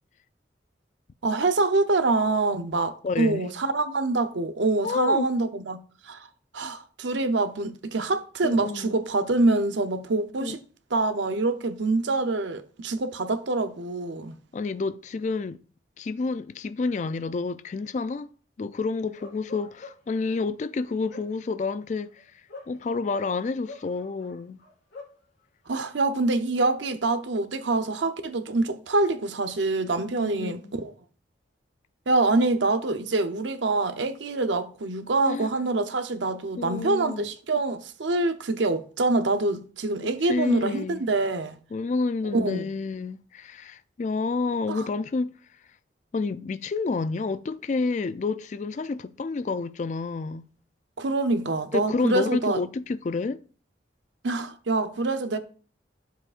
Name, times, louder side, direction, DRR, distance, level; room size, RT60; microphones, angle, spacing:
voice 1, 1.2-5.8 6.0-6.3 6.5-10.6 10.9-14.3 25.7-30.9 32.1-41.6 42.3-42.7 44.7-44.9 51.0-52.6 54.2-55.4, right 2 dB, 80° right, 0.7 m, -25 dB
voice 2, 3.0-3.5 4.8-5.3 8.4-9.0 10.4-10.5 14.5-15.6 16.0-18.3 18.6-24.6 30.2-30.8 35.3-35.5 36.6-37.3 40.2-41.0 41.7-45.3 46.1-50.5 51.7-53.4, left 4 dB, 40° left, 0.3 m, -29 dB
Bark, 19.1-20.2 20.8-23.2 23.6-25.2, left 3 dB, 85° left, 2.9 m, -46 dB
11.0 x 7.2 x 2.5 m
head